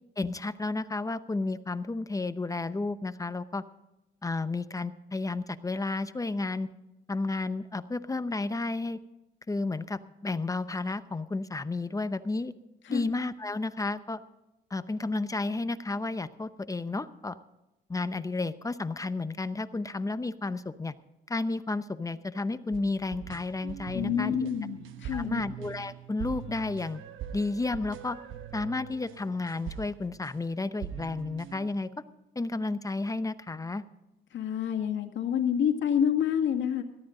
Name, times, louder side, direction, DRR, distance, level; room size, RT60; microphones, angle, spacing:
voice 1, 0.2-3.6 4.2-6.7 7.1-9.0 9.5-12.5 12.9-14.2 14.7-17.4 17.9-20.9 21.3-24.3 25.1-27.0 27.3-28.2 28.5-31.9 32.4-33.8, left 3 dB, 15° left, 13 dB, 0.7 m, -32 dB
sound 1, 22.7-30.5 30.8-31.7, right 10 dB, 80° right, 1.0 m, -42 dB
voice 2, 23.9-25.4 34.3-36.8, left 8 dB, 70° left, 5 dB, 1.9 m, -28 dB
18.0 x 13.0 x 3.8 m, 0.96 s
cardioid pair, 90°, 20 cm